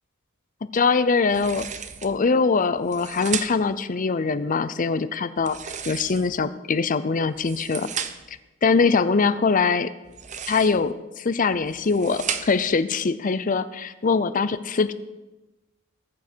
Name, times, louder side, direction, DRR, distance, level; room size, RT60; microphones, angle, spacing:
voice 1, 0.7-1.6 2.0-5.6 5.9-7.9 8.6-9.9 10.5-14.9, left 4 dB, 40° left, 13 dB, 0.5 m, -22 dB
sound 1, 1.3-2.2 2.8-3.8 5.4-6.5 7.3-8.4 10.0-10.9 11.5-12.7, right 7 dB, 35° right, 0.7 m, -34 dB
19.0 x 7.2 x 4.5 m, 1.1 s
head